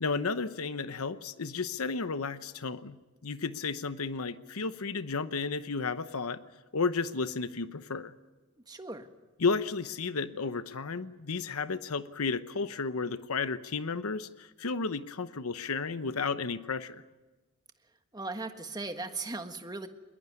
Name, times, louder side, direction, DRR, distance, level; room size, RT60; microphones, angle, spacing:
voice 1, 0.0-6.4 6.7-8.1 9.4-17.0, left 4 dB, 90° left, 12 dB, 0.9 m, -33 dB
voice 2, 8.7-9.1 18.1-19.9, right 3 dB, 20° right, 7 dB, 1.5 m, -38 dB
21.5 x 21.0 x 9.7 m, 1.2 s
head